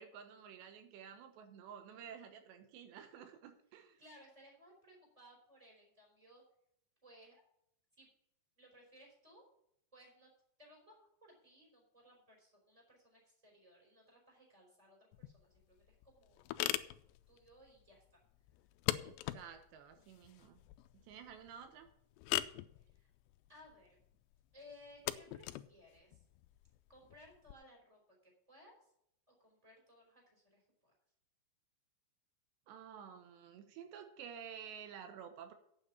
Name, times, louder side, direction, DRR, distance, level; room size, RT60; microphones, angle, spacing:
voice 1, 0.0-4.0 19.0-20.6 20.9-21.9 32.7-35.5, right 8 dB, 80° right, 7 dB, 3.2 m, -52 dB
voice 2, 4.0-6.4 7.0-7.4 8.0-8.1 8.6-9.4 9.9-10.3 10.6-16.4 17.3-18.2 22.9-23.1 23.5-24.0 24.5-26.2 26.9-28.9 29.3-30.9, left 1 dB, 10° right, -1 dB, 4.1 m, -61 dB
sound 1, 15.1-27.5, left 16 dB, 85° left, 2.7 m, -43 dB
8.8 x 7.2 x 8.5 m, 0.74 s
omnidirectional pair, 4.9 m